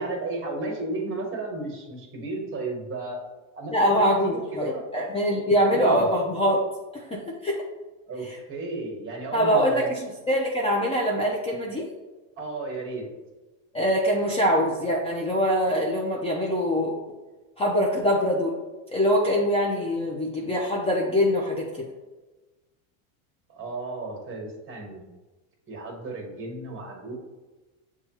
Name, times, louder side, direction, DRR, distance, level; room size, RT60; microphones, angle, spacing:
voice 1, 0.0-3.2 3.6-4.8 5.6-6.1 8.1-10.1 12.4-13.0 23.5-25.0 25.7-27.1, right 2 dB, 30° right, 0 dB, 1.3 m, -34 dB
voice 2, 3.7-6.6 6.9-7.6 9.3-10.0 10.3-11.9 13.7-16.9 17.6-18.6 18.9-21.7, equal, 15° left, -2 dB, 0.5 m, -23 dB
6.8 x 2.3 x 2.9 m, 1.2 s
supercardioid pair, 120°, 41 cm